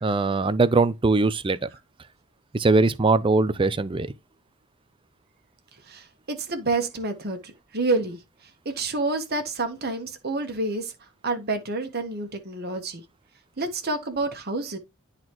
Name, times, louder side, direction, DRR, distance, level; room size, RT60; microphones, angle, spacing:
voice 1, 0.0-1.6 2.5-4.1, right 3 dB, 25° right, 0.4 m, -21 dB
voice 2, 5.9-7.4 7.7-8.2 8.6-10.9 11.2-13.0 13.6-14.8, right 3 dB, 45° right, 1.3 m, -28 dB
11.0 x 4.1 x 3.0 m
head